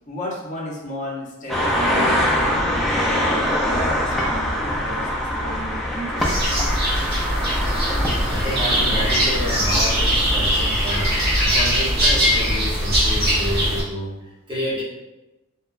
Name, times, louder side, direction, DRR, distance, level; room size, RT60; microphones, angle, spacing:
voice 1, 0.1-6.5, equal, 35° left, -4 dB, 0.6 m, -34 dB
sound 1, 1.5-11.5, equal, ahead, 0.3 m, -24 dB
sound 2, 6.2-13.8, equal, 50° right, 1.0 m, -21 dB
voice 2, 8.2-14.8, equal, 20° right, -7 dB, 0.8 m, -29 dB
2.8 x 2.2 x 2.4 m, 0.97 s
head